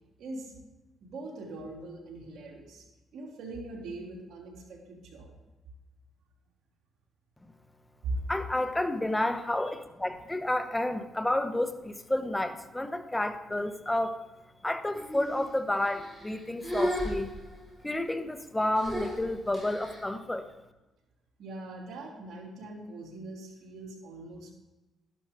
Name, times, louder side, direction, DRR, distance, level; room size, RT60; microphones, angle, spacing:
voice 1, 0.2-0.6 1.0-2.8 3.1-5.4 8.0-8.2 21.4-24.5, right 2 dB, 75° right, -1 dB, 2.9 m, -41 dB
voice 2, 8.3-14.2 14.6-17.3 17.8-20.5, left 1 dB, 10° left, 9 dB, 1.0 m, -30 dB
sound 1, 14.9-15.5 15.9-16.3 16.6-17.8 18.8-20.0, equal, 5° right, 4.4 m, -34 dB
12.0 x 11.0 x 3.7 m, 1.1 s
cardioid pair, 80°, 0 cm